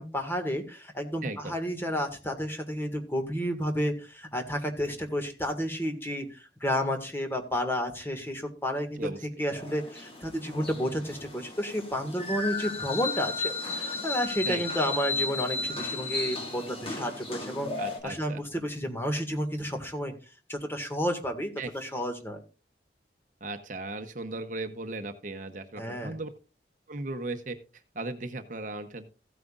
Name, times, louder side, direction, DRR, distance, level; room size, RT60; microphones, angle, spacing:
voice 1, 0.0-9.1 9.4-17.7 18.0-20.1 20.5-22.4 25.8-26.1, equal, 15° left, 5 dB, 1.8 m, -31 dB
voice 2, 1.2-1.5 9.0-9.2 14.5-14.6 17.8-18.4 21.6-22.0 23.4-26.3 26.9-27.6 27.9-29.1, right 2 dB, 45° right, 8 dB, 0.9 m, -37 dB
sound 1, 9.5-18.0, left 3 dB, 35° left, 2.7 m, -34 dB
15.5 x 9.2 x 2.5 m, 0.33 s
head